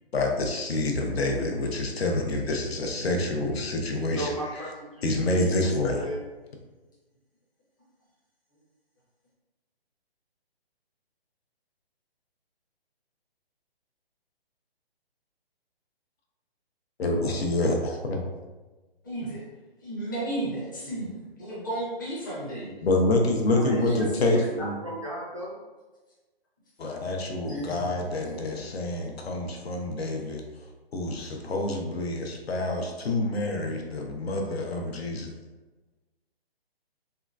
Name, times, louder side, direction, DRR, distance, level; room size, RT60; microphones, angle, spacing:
voice 1, 0.1-4.3 5.0-6.0 17.0-18.2 22.8-24.7 26.8-30.4 30.9-35.2, left 2 dB, 75° left, 2 dB, 0.7 m, -27 dB
voice 2, 4.1-5.0 5.3-6.2 23.5-25.6, right 1 dB, 35° right, -5 dB, 0.4 m, -34 dB
voice 3, 19.0-19.4 19.8-22.7 23.8-24.4 27.5-27.9 28.2-28.3, right 1 dB, 20° left, -8 dB, 0.6 m, -33 dB
3.7 x 2.2 x 2.3 m, 1.2 s
hypercardioid pair, 170°, 31 cm